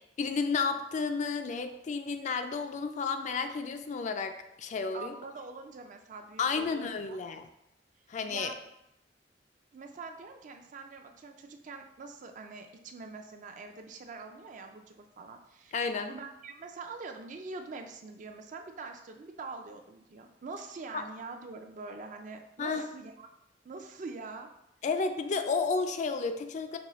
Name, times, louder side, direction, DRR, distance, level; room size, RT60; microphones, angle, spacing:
voice 1, 0.2-5.1 6.4-7.5 8.1-8.5 15.7-16.1 20.9-21.0 22.6-22.9 24.8-26.8, left 4 dB, 45° left, 7 dB, 0.3 m, -32 dB
voice 2, 4.9-7.2 8.3-8.6 9.7-15.7 16.1-23.3 23.6-24.5, right 4 dB, 45° right, 5 dB, 0.4 m, -44 dB
5.3 x 2.7 x 3.0 m, 0.84 s
head